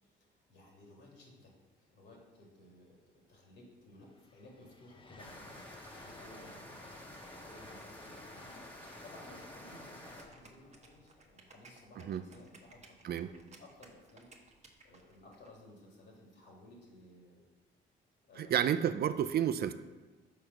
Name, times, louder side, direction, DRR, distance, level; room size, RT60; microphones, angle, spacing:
voice 1, 0.0-1.5 1.8-3.0 3.3-14.3 14.8-17.5 18.2-19.3, left 1 dB, 65° left, -1 dB, 2.2 m, -57 dB
sound 1, 3.6-3.7 3.9-12.1, left 2 dB, 25° left, 0.7 m, -55 dB
sound 2, 5.2-10.2, equal, 10° left, 1.2 m, -51 dB
sound 3, 10.2-15.5, right 3 dB, 35° right, 1.0 m, -59 dB
voice 2, 18.4-19.7, right 9 dB, 55° right, 11 dB, 0.4 m, -30 dB
5.1 x 4.4 x 6.1 m, 1.3 s
cardioid pair, 90°, 20 cm